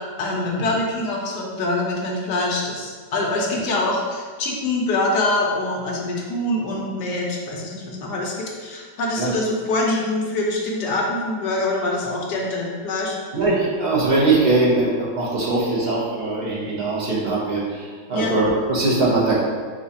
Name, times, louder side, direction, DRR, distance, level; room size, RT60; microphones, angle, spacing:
voice 1, 0.2-13.1 18.1-18.4, left 2 dB, 70° left, -1 dB, 1.3 m, -24 dB
voice 2, 13.3-19.4, right 2 dB, 40° right, -6 dB, 0.6 m, -21 dB
4.9 x 2.4 x 4.0 m, 1.6 s
omnidirectional pair, 1.9 m